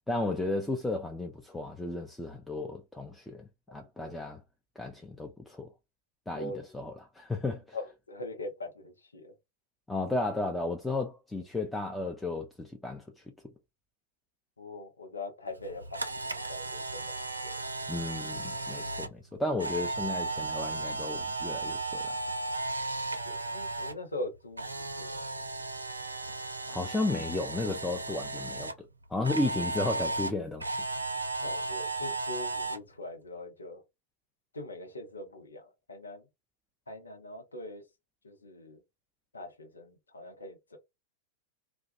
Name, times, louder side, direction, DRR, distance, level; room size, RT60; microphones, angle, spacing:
voice 1, 0.1-4.4 4.8-5.7 6.3-7.8 9.9-13.2 17.9-22.2 26.7-28.7 29.1-30.6, left 2 dB, 5° left, 0.4 m, -34 dB
voice 2, 3.7-4.2 6.3-6.6 7.7-9.3 14.6-17.6 23.2-25.3 31.4-33.8 34.5-36.2 36.9-37.8 38.2-38.8 39.3-40.8, left 2 dB, 75° left, 0.8 m, -42 dB
Camera, 15.6-23.9 24.2-28.7 29.2-32.8, right 2 dB, 80° right, 0.4 m, -35 dB
2.3 x 2.2 x 2.5 m
figure-of-eight pair, 90°, 0 cm